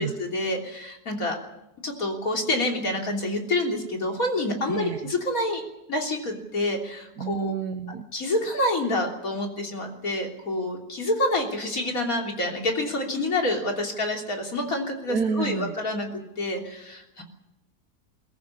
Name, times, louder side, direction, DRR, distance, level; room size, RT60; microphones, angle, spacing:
voice 1, 0.0-1.4 1.8-5.6 5.9-7.5 8.1-17.2, left 1 dB, 65° left, 2 dB, 3.7 m, -27 dB
voice 2, 4.7-5.1 7.2-8.1 15.1-15.7, right 6 dB, 80° right, 6 dB, 1.6 m, -29 dB
22.5 x 14.5 x 9.9 m, 0.88 s
omnidirectional pair, 1.6 m